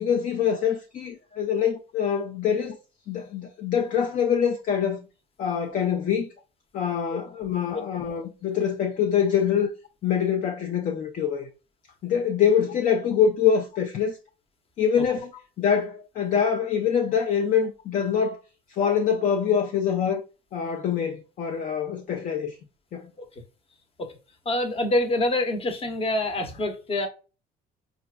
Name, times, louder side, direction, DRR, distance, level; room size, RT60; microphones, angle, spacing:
voice 1, 0.0-2.8 3.1-5.1 5.4-6.3 6.7-9.7 10.0-11.5 12.0-14.2 14.8-15.3 15.6-18.4 18.7-20.2 20.5-22.5 22.9-23.1, left 7 dB, 50° left, 0.5 m, -24 dB
voice 2, 24.5-27.1, left 1 dB, 35° left, 0.9 m, -25 dB
4.2 x 2.5 x 2.2 m
cardioid pair, 110°, 17 cm